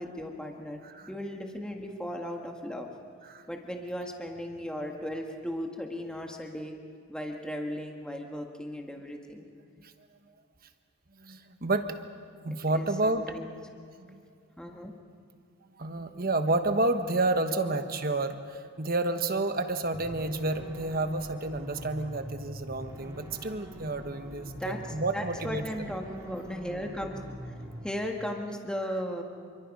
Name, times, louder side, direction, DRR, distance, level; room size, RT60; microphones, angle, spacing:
voice 1, 0.0-0.8 1.1-2.9 3.5-6.7 7.1-9.5 12.5-13.5 14.6-14.9 17.3-17.8 24.4-24.8 25.1-27.2 27.8-29.2, equal, 5° left, 2 dB, 1.6 m, -36 dB
voice 2, 11.2-13.3 14.0-14.2 15.8-25.6, right 2 dB, 40° right, 8 dB, 1.2 m, -30 dB
sound 1, 19.9-27.9, equal, 15° right, 2.4 m, -43 dB
27.5 x 24.5 x 5.4 m, 2.3 s
head